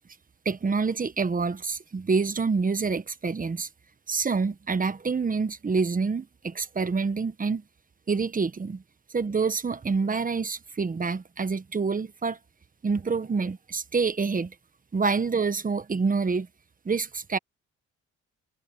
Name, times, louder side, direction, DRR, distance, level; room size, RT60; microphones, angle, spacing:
voice 1, 0.4-3.7 4.1-7.6 8.1-8.8 9.1-12.4 12.8-14.5 14.9-16.5 16.8-17.4, right 4 dB, 25° right, 1.4 m, -27 dB
cardioid pair, 90°, 30 cm